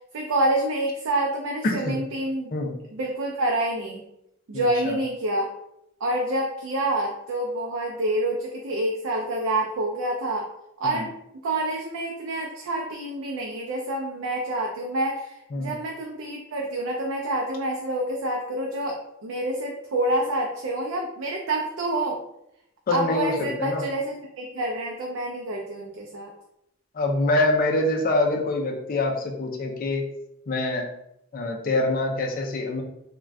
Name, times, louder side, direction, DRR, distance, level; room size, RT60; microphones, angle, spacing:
voice 1, 0.1-2.5 2.9-4.0 4.5-5.5 6.0-10.5 10.8-11.1 11.4-22.2 22.9-26.3, right 1 dB, 80° right, 0 dB, 0.4 m, -27 dB
voice 2, 1.6-2.0 2.5-2.8 4.5-5.0 10.8-11.1 15.5-15.7 22.9-23.8 26.9-30.1 30.5-30.9 31.3-32.8, left 2 dB, 45° left, 1 dB, 0.4 m, -25 dB
2.4 x 2.2 x 3.2 m, 0.81 s
head